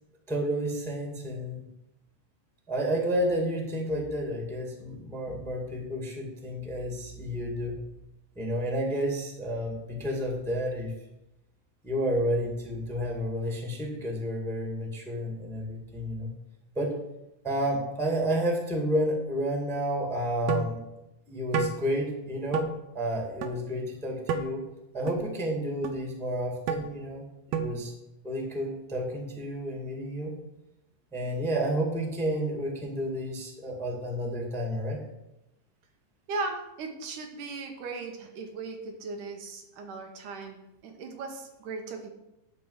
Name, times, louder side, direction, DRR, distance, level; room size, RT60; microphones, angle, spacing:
voice 1, 0.3-1.6 2.7-7.8 8.3-10.9 11.8-16.3 16.7-17.0 17.4-20.8 21.3-22.7 22.9-24.6 24.9-27.9 28.2-30.3 31.1-35.0, equal, ahead, 1 dB, 1.2 m, -31 dB
sound 1, 20.5-20.7 21.5-21.8 22.5-22.7 23.4-23.5 24.3-24.4 25.1-25.2 25.8-25.9 26.7-26.8 27.5-27.7, right 6 dB, 70° right, 1.7 m, -28 dB
voice 2, 36.3-42.1, right 3 dB, 85° right, 3 dB, 2.8 m, -37 dB
10.5 x 4.4 x 7.9 m, 0.92 s
omnidirectional pair, 3.5 m